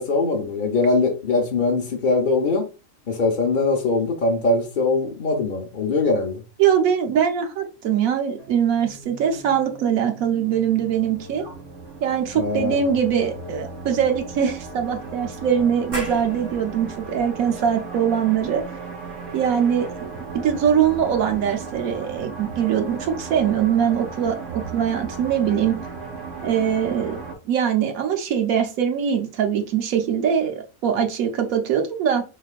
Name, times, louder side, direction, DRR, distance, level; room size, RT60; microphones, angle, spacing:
voice 1, 0.0-2.6 3.1-6.4 12.3-13.0, left 3 dB, 45° left, 0 dB, 0.8 m, -22 dB
voice 2, 6.6-11.4 12.0-18.6 19.3-20.1 20.4-25.8 26.4-32.2, right 8 dB, 85° right, 5 dB, 1.3 m, -22 dB
sound 1, 8.4-27.3, right 4 dB, 65° right, 1.4 m, -36 dB
sound 2, 15.9-21.3, right 1 dB, 30° right, 1.4 m, -40 dB
5.1 x 3.4 x 2.4 m, 0.31 s
omnidirectional pair, 1.4 m